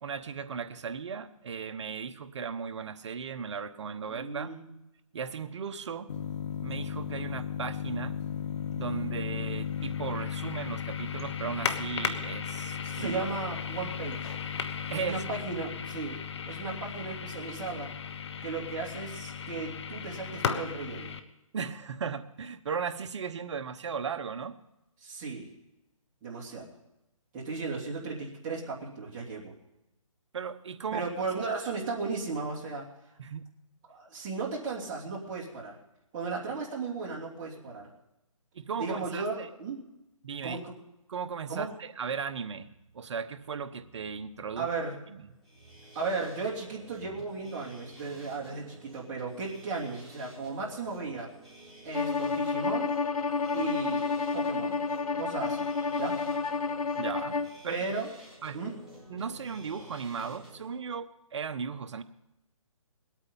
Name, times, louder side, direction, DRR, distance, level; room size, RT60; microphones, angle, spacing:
voice 1, 0.0-4.5 5.1-6.1 6.6-8.2 8.8-13.2 14.9-15.2 21.5-24.6 30.3-31.1 33.2-33.4 38.5-39.5 40.2-40.6 41.1-42.7 42.9-44.7 45.1-45.3 57.0-57.9 58.4-58.6 59.1-62.0, right 6 dB, 55° right, 8 dB, 1.0 m, -36 dB
voice 2, 4.1-4.7 12.8-14.4 14.9-16.2 16.5-17.9 18.4-21.1 25.0-25.5 26.2-26.7 27.3-29.5 30.9-32.9 33.9-35.8 36.1-37.9 38.8-39.8 40.4-40.7 41.5-41.7 44.6-45.0 45.9-51.3 51.8-52.9 53.5-54.8 55.2-55.7 56.0-56.2 57.7-58.1 58.5-58.7, right 4 dB, 20° right, -3 dB, 2.8 m, -35 dB
sound 1, 6.1-21.2, left 7 dB, 50° left, 1.2 m, -35 dB
sound 2, 45.3-60.7, right 1 dB, ahead, 4.1 m, -51 dB
Bowed string instrument, 51.9-57.6, left 4 dB, 90° left, 0.9 m, -30 dB
20.0 x 8.8 x 5.5 m, 0.91 s
hypercardioid pair, 155°, 18 cm